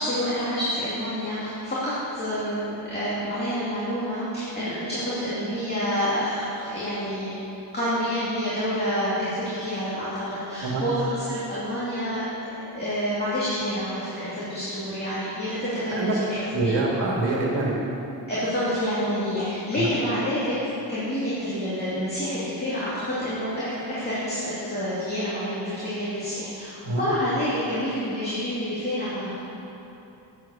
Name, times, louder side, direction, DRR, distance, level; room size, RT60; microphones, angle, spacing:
voice 1, 0.0-7.3 7.7-16.7 18.3-20.6 20.9-29.5, equal, 25° left, -11 dB, 2.5 m, -28 dB
voice 2, 16.5-17.8 19.8-19.9 26.8-27.0, right 2 dB, 75° right, -2 dB, 1.8 m, -25 dB
9.2 x 7.9 x 7.1 m, 3.0 s
wide cardioid pair, 160°, 42 cm